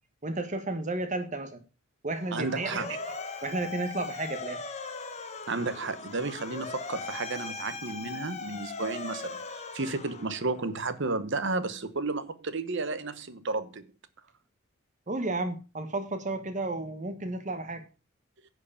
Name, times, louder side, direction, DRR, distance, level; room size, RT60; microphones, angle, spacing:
voice 1, 0.2-1.6 2.0-3.2 3.4-4.6 15.1-17.8, right 2 dB, 35° right, 1.1 m, -33 dB
Motor vehicle (road) / Siren, 2.1-10.7, left 4 dB, 30° left, 1.0 m, -39 dB
voice 2, 2.3-2.9 5.5-13.9, right 3 dB, 55° right, 1.0 m, -32 dB
10.5 x 4.7 x 7.0 m
head